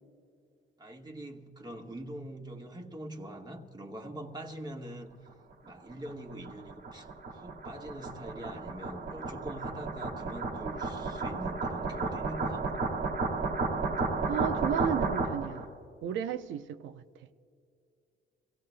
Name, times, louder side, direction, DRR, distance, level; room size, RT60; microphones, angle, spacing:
voice 1, 0.8-5.1 5.6-12.7, right 1 dB, 20° right, 1 dB, 1.4 m, -43 dB
sound 1, 5.7-15.6, right 3 dB, 55° right, 1.7 m, -33 dB
voice 2, 14.3-15.7 16.0-17.0, right 9 dB, 75° right, 10 dB, 0.7 m, -34 dB
27.0 x 16.0 x 2.2 m, 2.4 s
cardioid pair, 90°, 20 cm